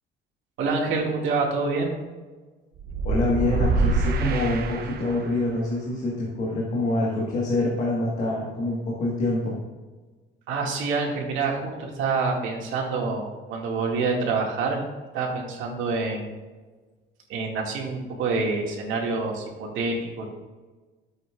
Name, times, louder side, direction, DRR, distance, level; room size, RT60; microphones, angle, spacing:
voice 1, 0.6-1.9 10.5-14.8 15.1-16.3 17.3-20.2, right 4 dB, 85° right, -1 dB, 2.2 m, -27 dB
sound 1, 2.8-5.4, right 3 dB, 50° right, 0.8 m, -25 dB
voice 2, 3.0-9.6, left 2 dB, 35° left, -3 dB, 1.6 m, -26 dB
13.0 x 8.0 x 2.5 m, 1.3 s
cardioid pair, 170°, 20 cm